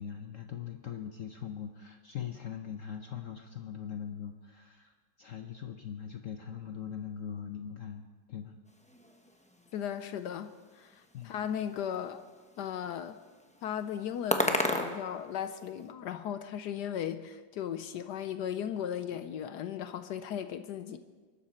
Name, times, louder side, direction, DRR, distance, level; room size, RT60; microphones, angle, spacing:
voice 1, 0.0-4.9 5.2-8.0 8.3-8.6 11.1-11.4, left 8 dB, 55° left, 5 dB, 1.0 m, -41 dB
sound 1, 8.7-15.9, left 1 dB, 5° left, 0.6 m, -37 dB
voice 2, 9.7-12.2 12.6-13.2 13.6-21.0, left 9 dB, 75° left, 10 dB, 1.2 m, -36 dB
23.0 x 12.5 x 4.3 m, 1.4 s
omnidirectional pair, 1.9 m